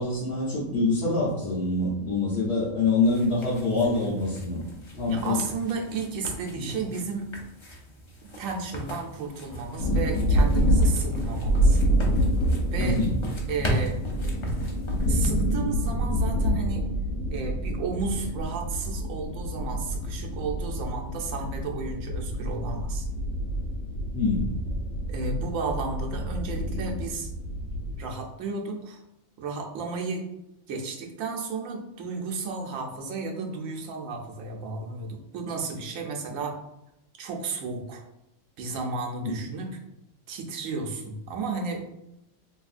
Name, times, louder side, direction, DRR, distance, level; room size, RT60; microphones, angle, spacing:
voice 1, 0.0-4.6 4.9-5.4 6.5-6.7 11.1-11.2 12.8-13.1 24.1-24.5 39.2-39.4, left 3 dB, 60° left, -8 dB, 1.1 m, -25 dB
sound 1, 3.0-15.6, right 1 dB, 35° left, 0.4 m, -37 dB
voice 2, 5.1-7.3 8.4-11.8 12.7-13.0 13.5-14.0 15.1-16.9 17.3-23.1 25.1-27.3 28.0-29.0 29.4-30.3 30.7-36.6 37.2-38.0 38.6-39.8 40.3-41.8, right 4 dB, 90° right, 2 dB, 1.1 m, -33 dB
sound 2, 9.8-28.0, equal, 90° left, 1.2 m, -27 dB
3.4 x 3.0 x 2.4 m, 0.85 s
omnidirectional pair, 1.4 m